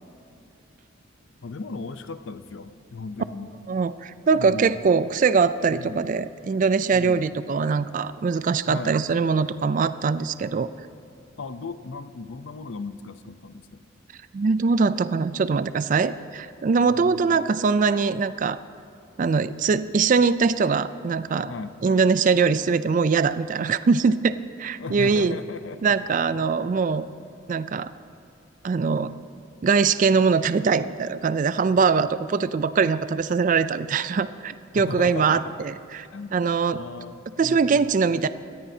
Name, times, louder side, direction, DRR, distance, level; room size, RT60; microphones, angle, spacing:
voice 1, 1.4-3.6 4.3-4.7 5.7-6.1 6.9-7.2 8.7-9.0 11.4-13.8 16.9-17.4 21.5-21.8 24.8-25.9 26.2-26.5 34.7-35.6 36.1-36.4 36.7-37.9, left 4 dB, 65° left, 12 dB, 0.6 m, -36 dB
voice 2, 3.7-10.7 14.3-18.6 19.2-21.5 21.8-24.3 24.6-25.4 25.8-27.1 27.5-27.9 28.6-29.1 29.6-36.1 36.3-36.8 37.4-38.3, right 5 dB, 40° right, 14 dB, 0.3 m, -22 dB
18.5 x 14.0 x 2.7 m, 2.7 s
head